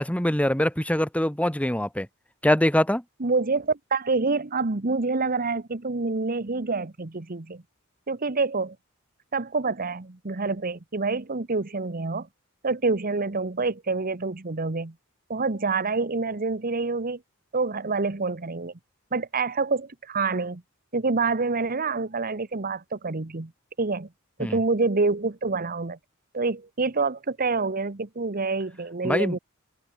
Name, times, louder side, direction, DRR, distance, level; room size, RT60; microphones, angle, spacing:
voice 1, 0.0-2.1 2.4-3.0 24.4-24.6 29.0-29.4, left 1 dB, 5° left, 2.3 m, -23 dB
voice 2, 3.2-7.6 8.1-8.7 9.3-12.3 12.6-14.9 15.3-17.2 17.5-18.7 19.1-20.6 20.9-23.5 23.8-24.1 24.4-26.0 26.3-29.4, right 3 dB, 45° right, 1.2 m, -27 dB
head